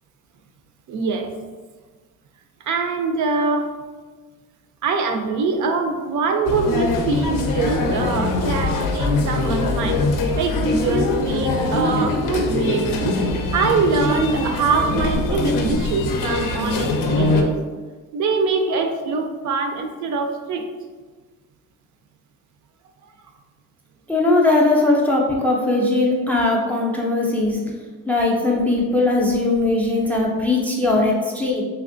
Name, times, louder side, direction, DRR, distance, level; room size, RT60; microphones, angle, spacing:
voice 1, 0.9-1.3 2.6-3.7 4.8-10.0 10.3-13.2 13.5-17.6 18.1-20.7, right 4 dB, 65° right, 5 dB, 0.5 m, -23 dB
sound 1, 6.5-17.4, left 2 dB, 85° left, 0.5 m, -22 dB
voice 2, 24.1-27.6 28.1-31.6, left 2 dB, 5° left, -2 dB, 0.3 m, -19 dB
3.3 x 2.9 x 2.5 m, 1.4 s
cardioid pair, 150°, 32 cm